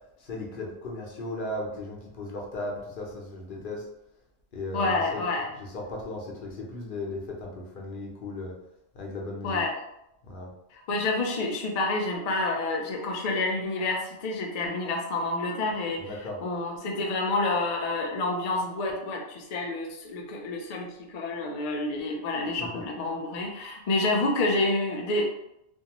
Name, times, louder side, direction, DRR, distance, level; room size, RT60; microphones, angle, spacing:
voice 1, 0.2-3.8 4.5-5.3 5.5-8.5 8.9-9.6 10.2-10.5 16.0-16.4 22.6-22.9, left 2 dB, 55° left, -1 dB, 0.7 m, -36 dB
voice 2, 4.7-5.5 9.4-9.7 10.7-16.1 16.4-25.2, left 2 dB, 90° left, 1 dB, 0.3 m, -28 dB
2.6 x 2.3 x 2.8 m, 0.82 s
omnidirectional pair, 1.2 m